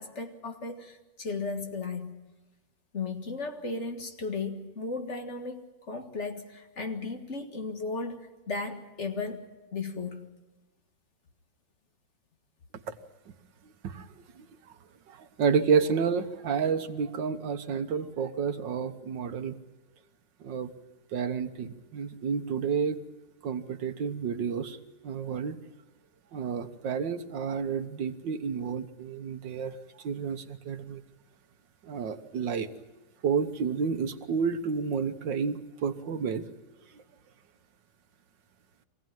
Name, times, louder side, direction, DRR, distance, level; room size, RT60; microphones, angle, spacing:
voice 1, 0.0-2.2 2.9-9.5 9.7-10.3, left 4 dB, 40° left, 5 dB, 2.0 m, -35 dB
voice 2, 15.1-19.6 20.4-20.7 21.1-23.0 23.4-24.8 25.0-25.6 26.3-31.0 31.8-32.7 33.2-36.5 36.9-37.0, right 6 dB, 80° right, 8 dB, 1.8 m, -30 dB
24.5 x 17.0 x 9.2 m, 1.1 s
omnidirectional pair, 1.9 m